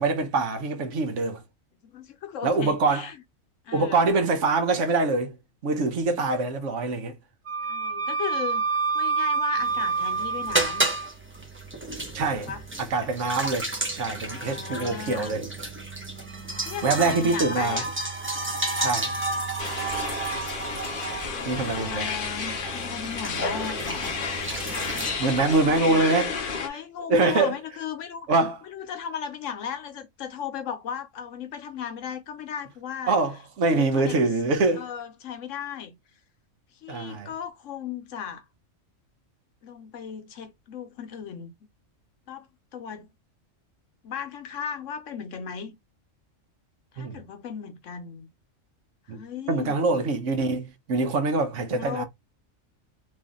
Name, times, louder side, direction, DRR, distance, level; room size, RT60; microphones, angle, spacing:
voice 1, 0.0-1.4 2.4-3.1 3.7-5.3 5.6-7.2 12.1-12.5 12.8-13.7 13.9-15.4 16.8-17.8 18.8-19.1 21.4-22.1 25.2-26.4 27.1-27.5 28.3-28.6 33.1-34.9 36.9-37.3 47.0-47.2 49.1-49.2 49.5-52.0, right 3 dB, 70° right, 1.1 m, -24 dB
voice 2, 1.8-3.1 3.6-4.1 7.6-8.6 8.9-10.9 12.5-12.7 14.2-15.4 16.6-17.9 21.2-24.2 25.4-26.2 26.6-28.3 28.6-33.2 33.7-34.2 34.8-35.9 36.7-38.5 39.6-41.5 42.3-42.5 42.7-43.1 44.0-45.7 46.9-48.3 49.1-49.8 51.6-52.0, left 7 dB, 75° left, 1.1 m, -36 dB
Wind instrument woodwind instrument, 7.5-11.1, right 5 dB, 85° right, 1.7 m, -27 dB
sound 1, 9.6-25.1, right 2 dB, 15° right, 0.5 m, -32 dB
sound 2, 19.6-26.7, left 4 dB, 50° left, 0.8 m, -31 dB
3.3 x 2.6 x 3.5 m
omnidirectional pair, 1.4 m